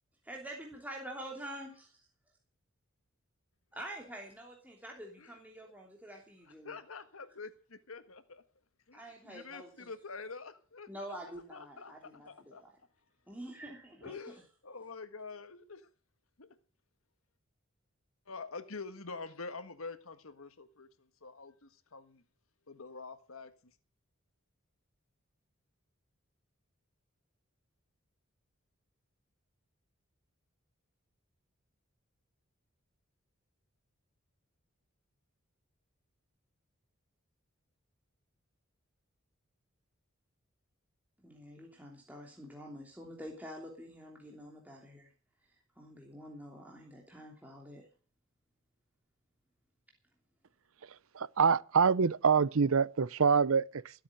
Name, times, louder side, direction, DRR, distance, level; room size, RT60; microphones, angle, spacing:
voice 1, 0.2-2.0 3.7-6.8 8.9-9.9 10.9-12.7 13.3-14.3 41.2-45.1 45.8-47.9, right 1 dB, 10° right, 3.0 m, -47 dB
voice 2, 6.6-8.4 8.9-12.6 14.0-15.9 16.4-16.5 18.3-22.2 22.7-23.5, left 4 dB, 85° left, 1.6 m, -46 dB
voice 3, 51.1-54.0, right 5 dB, 75° right, 0.7 m, -26 dB
15.5 x 8.7 x 8.9 m
head